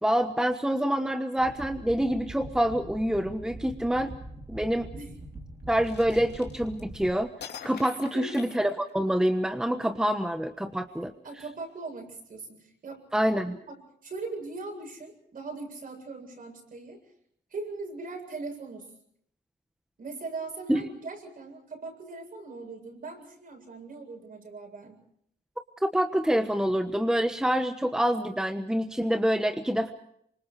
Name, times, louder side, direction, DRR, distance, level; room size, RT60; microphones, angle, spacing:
voice 1, 0.0-4.1 4.5-4.9 5.7-7.3 7.6-11.1 13.1-13.6 20.7-20.8 25.9-29.9, equal, 5° right, 7 dB, 1.3 m, -26 dB
sound 1, 1.4-7.1, right 1 dB, 30° right, 3.4 m, -43 dB
sound 2, 5.8-7.0 7.4-9.3, left 7 dB, 75° left, 3.1 m, -45 dB
voice 2, 8.0-8.5 11.2-13.0 14.0-17.0 17.5-18.9 20.0-25.0, right 3 dB, 55° right, 3 dB, 7.7 m, -40 dB
28.0 x 25.5 x 4.8 m, 0.70 s
wide cardioid pair, 130°, 17 cm